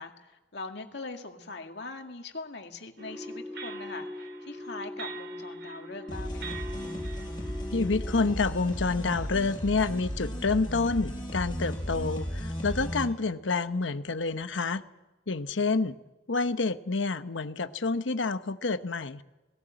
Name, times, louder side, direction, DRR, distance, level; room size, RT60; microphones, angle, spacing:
voice 1, 0.0-6.6, left 3 dB, 65° left, 4 dB, 2.1 m, -42 dB
sound 1, 3.0-8.3, equal, 70° right, 3.4 m, -40 dB
sound 2, 6.1-13.1, equal, 25° left, 5.5 m, -35 dB
voice 2, 7.7-14.8 15.3-16.0 16.3-19.2, left 3 dB, 90° left, 11 dB, 1.0 m, -28 dB
18.0 x 17.5 x 8.9 m, 1.1 s
head